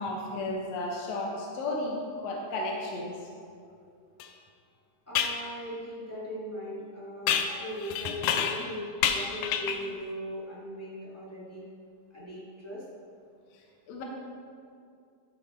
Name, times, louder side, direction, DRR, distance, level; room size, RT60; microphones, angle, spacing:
voice 1, 0.0-3.1 13.9-14.0, left 2 dB, 65° left, 0 dB, 1.9 m, -33 dB
sound 1, 4.2-4.3 5.1-5.4 7.3-8.7 9.0-9.9, left 8 dB, 80° left, 2.1 m, -29 dB
voice 2, 5.1-11.6 12.1-12.8, equal, 10° left, -7 dB, 0.9 m, -39 dB
12.0 x 4.3 x 4.4 m, 2.3 s
omnidirectional pair, 3.8 m